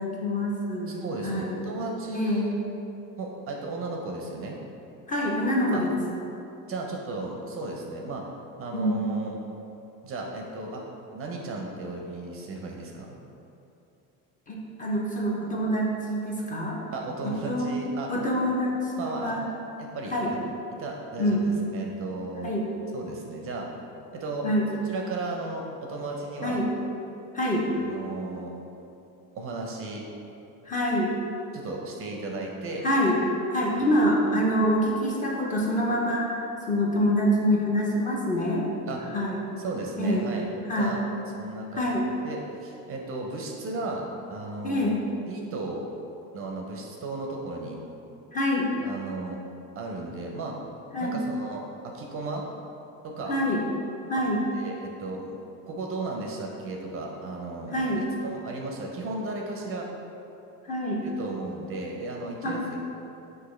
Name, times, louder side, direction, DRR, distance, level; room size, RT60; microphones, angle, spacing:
voice 1, 0.0-0.9 1.2-1.6 2.1-2.5 5.1-5.9 8.7-9.0 14.5-16.8 17.2-17.7 18.1-19.4 20.1-20.3 21.2-21.4 22.4-22.6 24.4-24.7 26.4-26.7 27.3-27.6 30.6-31.1 32.8-33.2 33.5-38.7 39.1-39.4 40.0-40.3 40.7-40.9 41.7-42.0 44.6-45.0 48.3-48.7 50.9-51.2 53.3-53.6 54.1-54.4 57.7-58.1 60.6-61.0 62.4-62.6, equal, 20° left, -3 dB, 0.5 m, -26 dB
voice 2, 0.9-2.5 3.2-4.6 5.7-5.8 6.7-8.3 8.6-9.4 10.0-10.8 11.1-13.2 16.9-18.1 19.0-19.4 19.8-20.4 20.8-22.5 22.9-23.7 24.1-24.5 24.8-26.6 27.8-28.5 29.3-30.0 31.5-32.8 33.7-33.9 38.9-39.0 39.6-40.5 40.7-41.0 41.4-42.0 42.2-44.9 45.3-45.8 46.3-47.8 48.8-49.4 49.8-50.6 51.0-52.5 53.0-53.4 54.5-55.4 55.7-57.9 58.2-59.9 61.0-62.8, right 2 dB, 35° right, 0 dB, 0.4 m, -35 dB
6.0 x 2.5 x 3.0 m, 2.8 s
cardioid pair, 130°, 39 cm